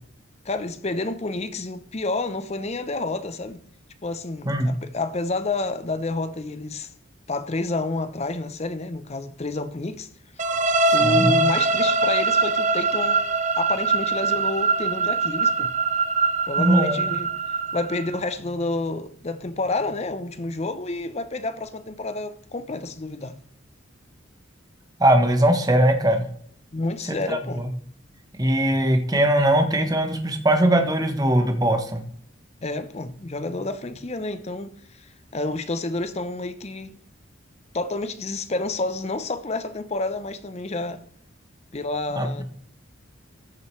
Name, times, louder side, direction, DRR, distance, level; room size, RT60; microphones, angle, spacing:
voice 1, 0.4-3.6 4.0-6.9 7.3-10.1 10.4-10.5 10.9-13.2 13.6-15.7 16.4-17.3 17.7-23.3 26.7-27.6 32.6-37.0 37.7-41.0 41.7-42.4, left 2 dB, 30° left, 0.7 m, -29 dB
sound 1, 10.4-18.2, right 3 dB, 35° right, 0.6 m, -22 dB
voice 2, 10.9-11.4 16.6-17.0 25.0-26.3 27.1-27.7 28.4-32.0 42.1-42.3, right 1 dB, 20° right, 1.0 m, -20 dB
13.5 x 6.5 x 3.2 m
head